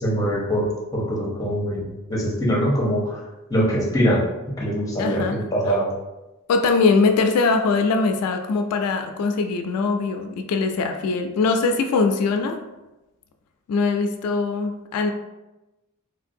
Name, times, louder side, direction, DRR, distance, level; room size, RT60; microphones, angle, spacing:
voice 1, 0.0-3.2 3.5-4.2 4.6-5.9, equal, 15° left, -4 dB, 0.7 m, -23 dB
voice 2, 5.0-5.4 6.5-12.6 13.7-15.1, left 4 dB, 90° left, 8 dB, 0.3 m, -21 dB
3.2 x 2.5 x 2.5 m, 1.0 s
head